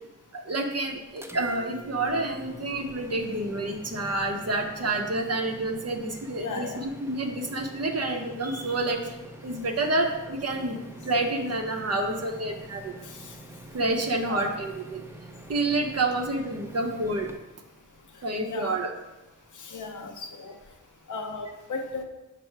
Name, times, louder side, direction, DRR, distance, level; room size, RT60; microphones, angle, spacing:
voice 1, 0.3-9.1 9.4-12.9 13.7-15.0 15.5-17.3 18.2-18.9, right 2 dB, 50° right, 2 dB, 0.6 m, -28 dB
sound 1, 1.2-17.4, right 1 dB, 10° right, 0.4 m, -45 dB
voice 2, 6.4-6.8 14.2-14.6 18.5-18.8 19.6-20.5 21.1-22.0, left 4 dB, 70° left, 4 dB, 0.6 m, -35 dB
5.5 x 2.0 x 4.5 m, 1.0 s
cardioid pair, 50°, 31 cm